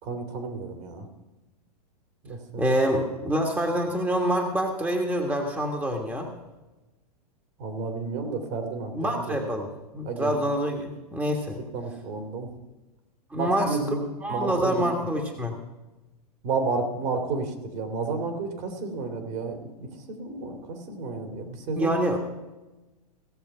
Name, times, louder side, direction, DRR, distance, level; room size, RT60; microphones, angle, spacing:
voice 1, 0.0-1.1 2.2-2.6 7.6-9.4 10.0-10.4 11.7-12.5 13.3-14.0 14.3-14.8 16.4-21.9, right 4 dB, 50° right, 6 dB, 2.5 m, -31 dB
voice 2, 2.6-6.3 8.9-11.6 13.3-13.8 14.2-15.6 21.8-22.2, equal, 10° right, 2 dB, 1.5 m, -26 dB
16.5 x 6.9 x 5.6 m, 1.1 s
hypercardioid pair, 115°, 20 cm